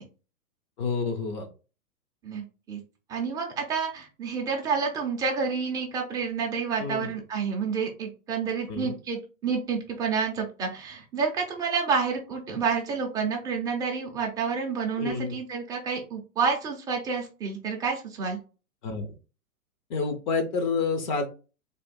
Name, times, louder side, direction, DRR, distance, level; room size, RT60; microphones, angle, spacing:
voice 1, 0.8-1.5 6.8-7.1 8.7-9.0 15.0-15.4 18.8-19.1 19.9-21.3, left 4 dB, 35° left, 6 dB, 0.6 m, -29 dB
voice 2, 2.2-2.8 3.1-18.4, right 5 dB, 10° right, 0 dB, 0.5 m, -29 dB
3.4 x 2.4 x 4.0 m, 0.33 s
hypercardioid pair, 130°, 43 cm